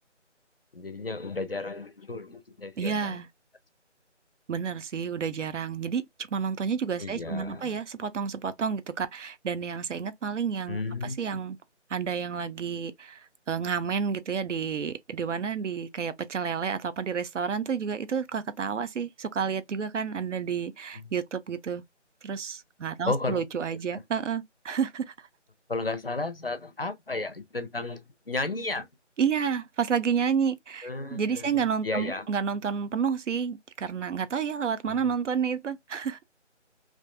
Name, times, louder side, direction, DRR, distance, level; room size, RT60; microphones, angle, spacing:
voice 1, 0.7-3.2 7.0-7.8 10.7-11.4 20.9-21.1 23.1-23.4 23.9-24.0 25.7-28.9 30.8-32.3 34.9-35.1, left 3 dB, 55° left, 0.4 m, -33 dB
voice 2, 2.8-3.3 4.5-6.0 6.3-11.6 11.9-21.8 22.2-25.1 29.2-36.2, right 6 dB, 75° right, 0.5 m, -30 dB
2.5 x 2.1 x 2.4 m
figure-of-eight pair, 180°, 36 cm